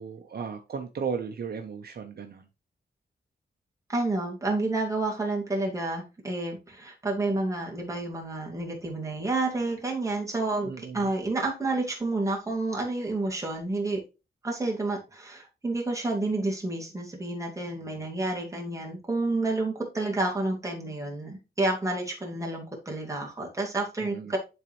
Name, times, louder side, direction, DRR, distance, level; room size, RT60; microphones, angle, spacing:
voice 1, 0.0-2.5 10.6-11.1 24.0-24.3, right 6 dB, 60° right, 0.9 m, -35 dB
voice 2, 3.9-14.0 14.4-24.4, right 2 dB, 15° right, 2.4 m, -30 dB
11.0 x 4.0 x 3.1 m
wide cardioid pair, 145°, 18 cm